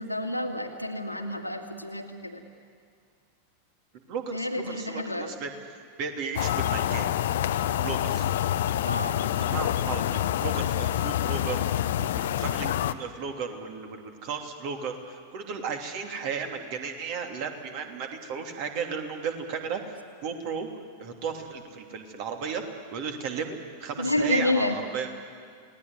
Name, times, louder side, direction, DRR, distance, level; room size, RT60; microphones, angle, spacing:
voice 1, 0.0-2.4 4.3-5.3 8.8-9.2 24.0-24.8, left 2 dB, 85° left, 5 dB, 2.1 m, -29 dB
voice 2, 3.9-5.5 6.0-7.1 7.7-8.2 9.4-20.7 21.0-22.6 22.9-25.1, right 6 dB, 45° right, 4 dB, 3.0 m, -34 dB
sound 1, 6.4-12.9, left 11 dB, 60° left, 0.8 m, -27 dB
29.0 x 19.0 x 9.6 m, 2.2 s
figure-of-eight pair, 90°, 0 cm